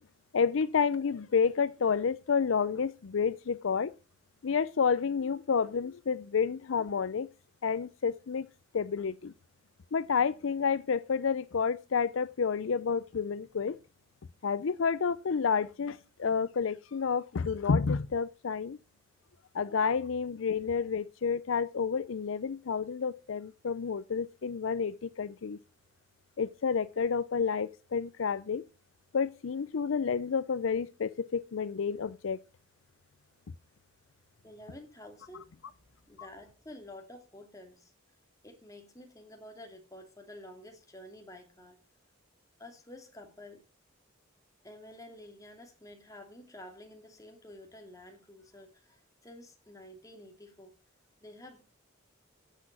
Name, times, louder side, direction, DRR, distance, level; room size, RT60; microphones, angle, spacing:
voice 1, 0.3-3.9 4.4-7.3 7.6-8.5 8.7-9.3 9.9-13.8 14.4-18.8 19.5-25.6 26.4-28.6 29.1-32.4 36.2-36.3, left 6 dB, 70° left, 0.5 m, -30 dB
voice 2, 34.4-35.4 36.1-37.9 38.4-41.8 42.6-43.6 44.6-50.8 51.2-51.6, left 1 dB, 15° left, 2.6 m, -50 dB
10.0 x 8.4 x 6.1 m
head